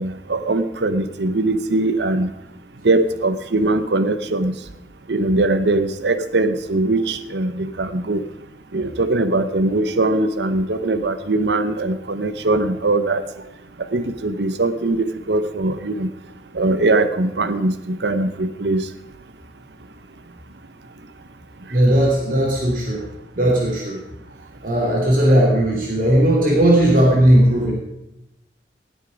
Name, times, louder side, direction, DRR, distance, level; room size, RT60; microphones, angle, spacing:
voice 1, 0.0-2.3 2.8-4.5 5.1-8.2 8.7-13.2 13.9-16.1 16.5-18.9, right 2 dB, 70° right, 11 dB, 0.8 m, -21 dB
voice 2, 21.7-23.0 23.3-24.0 24.6-27.7, right 1 dB, 50° right, -2 dB, 2.9 m, -16 dB
18.5 x 8.2 x 5.2 m, 0.88 s
head